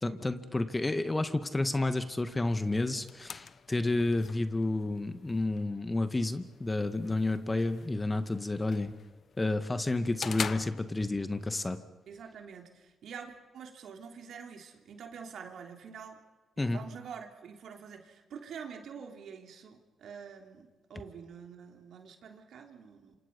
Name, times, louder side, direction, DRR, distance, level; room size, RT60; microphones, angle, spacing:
voice 1, 0.0-8.9 9.4-11.8 16.6-16.8, left 2 dB, 25° left, 9 dB, 2.1 m, -30 dB
sound 1, 2.4-11.4, left 6 dB, 55° left, 0.8 m, -45 dB
voice 2, 12.1-16.2 16.6-23.1, right 6 dB, 70° right, 3 dB, 3.4 m, -46 dB
28.0 x 26.5 x 5.5 m, 1.2 s
supercardioid pair, 50°, 0 cm